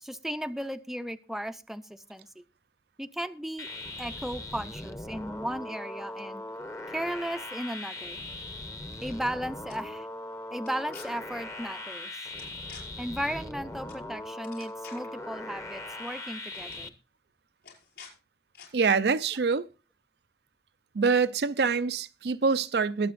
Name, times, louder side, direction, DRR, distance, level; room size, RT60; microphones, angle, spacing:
voice 1, 0.0-2.3 3.0-3.7 4.0-6.4 6.9-8.2 9.0-10.1 10.5-12.2 13.0-16.9, equal, ahead, 0.5 m, -35 dB
sound 1, 3.6-16.9, left 2 dB, 15° left, 0.8 m, -40 dB
sound 2, 8.8-9.3 9.7-9.8 10.6-11.1 12.4-12.8 13.9-14.1 14.3-15.2 16.1-16.3 16.5-16.8 17.6-18.1 18.5-18.7, left 7 dB, 60° left, 5.3 m, -49 dB
voice 2, 18.7-19.7 20.9-23.1, right 5 dB, 65° right, 0.5 m, -25 dB
22.0 x 7.8 x 2.5 m
head